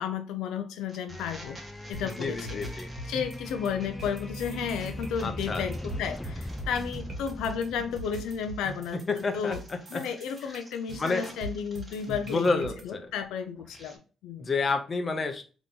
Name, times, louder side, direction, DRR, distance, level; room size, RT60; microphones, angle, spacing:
voice 1, 0.0-1.6 1.9-9.6 9.9-14.5, left 7 dB, 90° left, 7 dB, 0.5 m, -33 dB
sound 1, 0.9-12.8 13.1-14.0, right 1 dB, 20° right, 1.7 m, -52 dB
sound 2, 1.1-9.0, left 1 dB, 10° left, 0.4 m, -40 dB
sound 3, 1.9-12.8, right 1 dB, 50° right, 1.7 m, -42 dB
voice 2, 2.0-2.9 5.2-5.6 9.1-10.0 11.0-11.2 12.1-13.0 14.4-15.4, left 4 dB, 35° left, 6 dB, 0.8 m, -29 dB
3.6 x 3.0 x 3.8 m, 0.36 s
cardioid pair, 90°, 0 cm